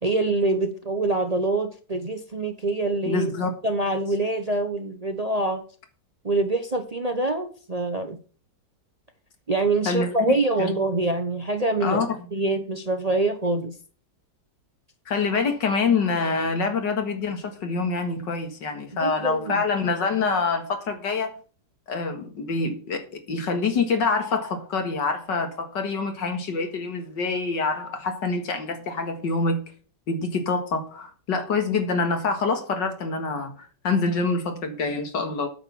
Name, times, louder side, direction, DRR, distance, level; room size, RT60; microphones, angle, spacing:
voice 1, 0.0-3.3 3.6-5.6 6.2-8.2 9.5-13.7 19.0-19.6, right 2 dB, 35° right, 6 dB, 0.7 m, -25 dB
voice 2, 3.1-3.5 9.9-10.7 11.8-12.2 15.1-21.3 21.9-29.6 30.1-35.5, left 4 dB, 90° left, 6 dB, 2.4 m, -26 dB
8.9 x 6.6 x 7.0 m, 0.40 s
omnidirectional pair, 1.9 m